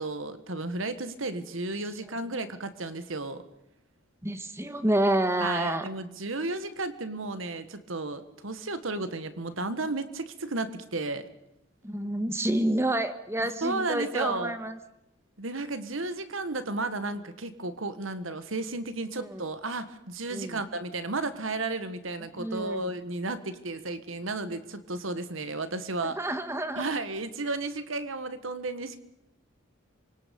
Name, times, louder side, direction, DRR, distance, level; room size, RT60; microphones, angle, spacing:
voice 1, 0.0-3.4 5.4-11.3 13.4-14.6 15.4-26.2 26.8-29.0, right 2 dB, 75° right, 11 dB, 1.6 m, -33 dB
voice 2, 4.2-5.9 11.8-14.8 19.3-19.4 20.3-20.6 22.4-22.9 26.0-26.8, right 1 dB, 15° right, 9 dB, 1.5 m, -28 dB
27.0 x 25.0 x 5.4 m, 0.82 s
head